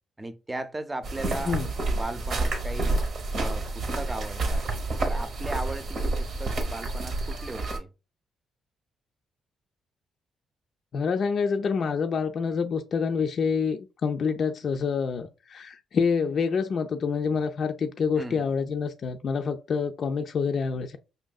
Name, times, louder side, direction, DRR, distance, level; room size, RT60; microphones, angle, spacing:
voice 1, 0.2-1.6 1.9-3.0 3.3-4.7 5.0-7.9 18.2-18.5, right 2 dB, 20° right, 0.5 m, -37 dB
sound 1, 1.0-7.8, right 2 dB, 65° right, 0.9 m, -29 dB
voice 2, 10.9-21.0, left 5 dB, 60° left, 0.3 m, -27 dB
5.4 x 2.6 x 2.2 m
supercardioid pair, 60°, 0 cm